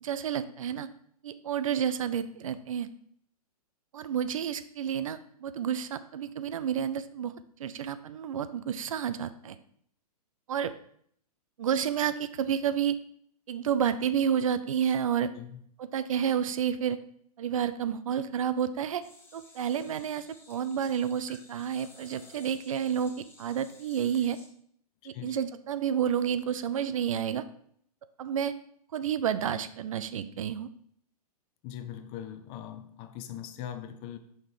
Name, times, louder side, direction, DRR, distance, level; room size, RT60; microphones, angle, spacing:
voice 1, 0.0-0.9 1.2-2.9 3.9-7.3 7.6-9.6 10.5-10.7 11.6-13.0 13.5-15.3 15.9-17.0 17.4-19.0 19.3-24.4 25.1-27.4 28.2-28.5 28.9-30.7, right 8 dB, 55° right, 0.5 m, -30 dB
voice 2, 15.3-15.6 25.1-25.4 31.6-34.2, left 10 dB, 25° left, 0.5 m, -41 dB
sound 1, 19.0-24.5, left 2 dB, 10° left, 1.5 m, -55 dB
5.4 x 3.7 x 4.7 m
figure-of-eight pair, 115°, 20 cm